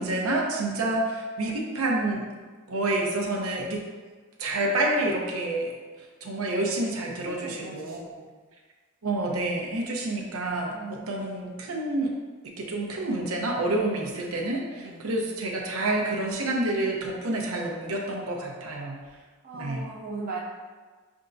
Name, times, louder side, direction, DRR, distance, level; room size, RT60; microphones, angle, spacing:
voice 1, 0.0-2.2 2.7-3.8 4.4-5.7 6.2-8.0 9.0-12.1 12.6-19.0 19.5-19.8, right 2 dB, 85° right, -1 dB, 0.8 m, -28 dB
voice 2, 7.2-8.3 10.7-11.3 14.8-15.1 19.4-20.4, right 3 dB, 40° right, -3 dB, 0.5 m, -39 dB
5.7 x 3.6 x 2.6 m, 1.4 s
head